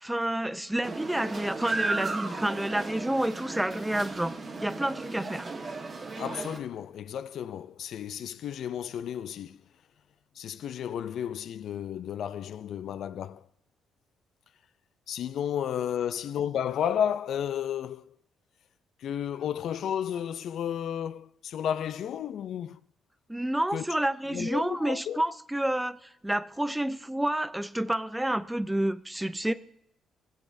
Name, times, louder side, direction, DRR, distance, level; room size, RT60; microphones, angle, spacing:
voice 1, 0.0-4.3 4.6-5.5 23.3-29.5, right 1 dB, 5° right, 0.4 m, -29 dB
sound 1, 0.8-6.6, right 3 dB, 40° right, 1.3 m, -35 dB
voice 2, 6.2-9.6 10.4-13.4 15.1-18.1 19.0-22.8 23.7-23.8 24.3-25.2, left 9 dB, 70° left, 0.3 m, -32 dB
16.5 x 8.0 x 2.6 m
cardioid pair, 90°, 0 cm